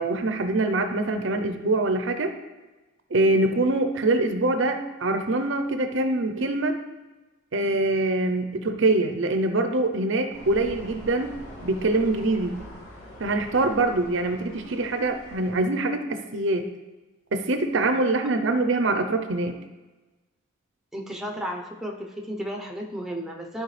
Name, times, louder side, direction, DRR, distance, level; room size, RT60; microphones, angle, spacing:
voice 1, 0.0-2.3 3.1-6.8 7.5-11.3 11.6-12.6 13.2-16.7 17.3-19.6, right 2 dB, 55° right, 7 dB, 0.6 m, -24 dB
sound 1, 10.3-15.6, equal, 80° left, 2.3 m, -44 dB
voice 2, 20.9-23.6, equal, ahead, 1 dB, 0.7 m, -33 dB
13.0 x 4.7 x 3.3 m, 1.2 s
head